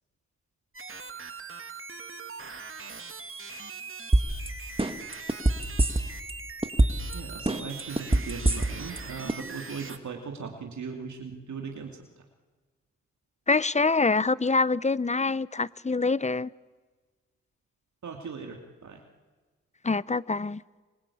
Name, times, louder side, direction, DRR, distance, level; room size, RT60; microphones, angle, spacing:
sound 1, 0.7-10.0, right 4 dB, 45° right, 2.4 m, -41 dB
sound 2, 4.1-4.5 4.8-6.3 6.6-7.1 7.5-9.0 9.3-9.4, right 1 dB, 20° right, 2.2 m, -22 dB
voice 1, 7.1-12.0 18.0-19.0, right 5 dB, 70° right, 2.7 m, -39 dB
voice 2, 13.5-16.5 19.8-20.6, left 3 dB, 25° left, 0.8 m, -25 dB
27.0 x 25.5 x 8.7 m
cardioid pair, 50°, 30 cm